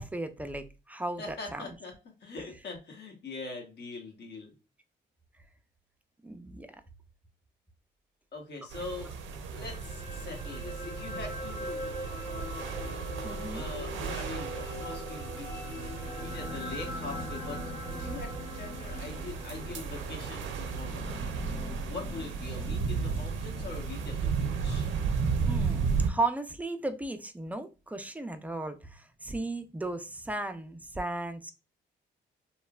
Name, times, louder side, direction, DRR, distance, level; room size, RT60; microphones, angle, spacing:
voice 1, 0.0-1.7 6.2-6.7 13.2-13.7 25.5-31.5, right 2 dB, 10° right, 0.3 m, -35 dB
voice 2, 1.2-4.5 8.3-9.1 9.5-11.8 13.5-17.6 17.9-21.1 21.9-24.9, left 3 dB, 60° left, 1.1 m, -42 dB
sound 1, 8.7-26.1, right 5 dB, 80° right, 0.5 m, -34 dB
sound 2, 9.6-21.9 22.3-22.4, left 1 dB, 20° left, 0.9 m, -42 dB
sound 3, 16.2-25.2, left 4 dB, 35° left, 0.6 m, -47 dB
3.1 x 2.1 x 2.3 m
cardioid pair, 90°, 20 cm